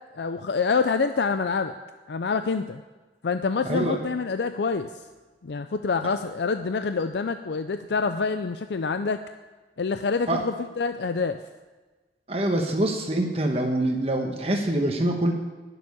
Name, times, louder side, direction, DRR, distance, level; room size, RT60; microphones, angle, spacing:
voice 1, 0.1-1.7 2.1-2.8 3.2-4.9 5.4-9.2 9.8-11.4, left 4 dB, 75° left, 9 dB, 0.5 m, -26 dB
voice 2, 3.6-4.0 10.3-10.4 12.3-15.3, right 1 dB, 35° right, 3 dB, 1.2 m, -25 dB
11.0 x 7.1 x 9.7 m, 1.3 s
head